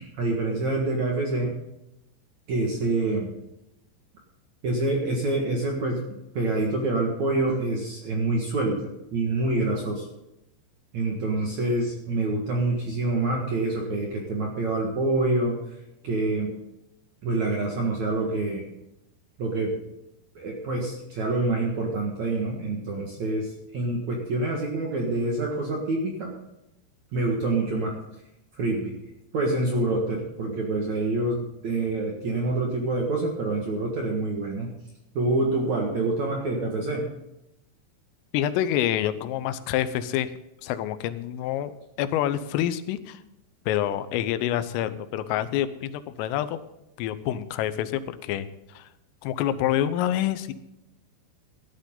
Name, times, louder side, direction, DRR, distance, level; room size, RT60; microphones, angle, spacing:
voice 1, 0.0-1.5 2.5-3.3 4.6-6.0 6.3-10.1 10.9-15.6 16.0-16.5 17.2-18.7 19.4-19.8 20.4-26.3 27.1-28.0 28.5-29.0 29.3-34.7 35.1-37.1, right 2 dB, 55° right, 0 dB, 2.1 m, -26 dB
voice 2, 38.3-40.3 40.6-43.2 43.7-46.6 47.0-48.9 49.2-50.5, left 11 dB, 90° left, 12 dB, 3.4 m, -27 dB
15.5 x 11.5 x 3.8 m, 0.91 s
omnidirectional pair, 5.7 m